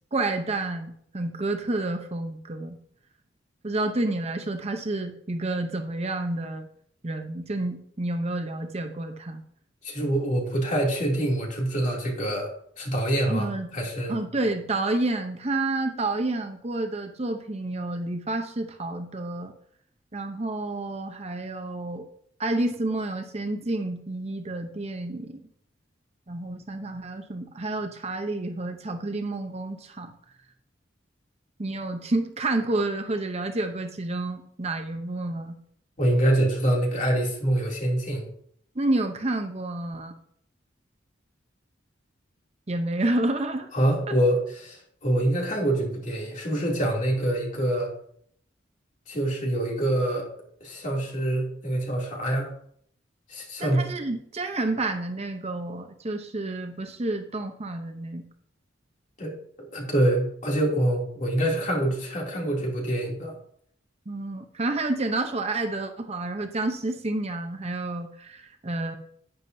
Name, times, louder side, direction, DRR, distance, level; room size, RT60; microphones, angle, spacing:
voice 1, 0.1-2.8 3.6-6.7 7.0-9.4 13.2-13.7 14.1-19.5 20.1-22.1 22.4-25.4 26.3-30.1 31.6-35.6 38.7-40.1 42.7-43.7 53.6-58.2 64.1-69.0, right 2 dB, 35° right, 6 dB, 0.8 m, -29 dB
voice 2, 9.8-12.5 12.8-14.1 36.0-38.3 43.7-47.9 49.1-50.3 50.6-52.5 53.3-53.9 59.2-59.3 59.6-63.3, right 1 dB, 40° left, -2 dB, 2.9 m, -25 dB
11.0 x 9.3 x 2.7 m, 0.65 s
head